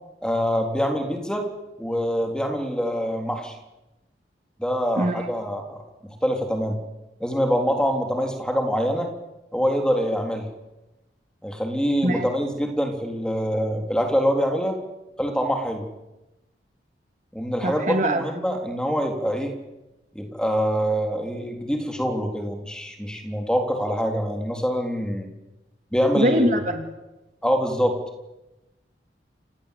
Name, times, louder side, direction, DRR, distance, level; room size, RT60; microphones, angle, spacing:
voice 1, 0.2-1.4 1.8-3.6 4.6-5.8 6.2-6.8 7.2-9.1 9.5-10.5 11.4-14.8 15.2-15.9 17.3-19.5 20.2-25.3 25.9-26.4 27.4-28.0, equal, 5° left, 3 dB, 3.5 m, -25 dB
voice 2, 5.0-5.3 12.0-12.3 17.6-18.2 26.2-26.9, right 1 dB, 45° right, 6 dB, 2.4 m, -22 dB
28.5 x 17.0 x 8.4 m, 1.0 s
head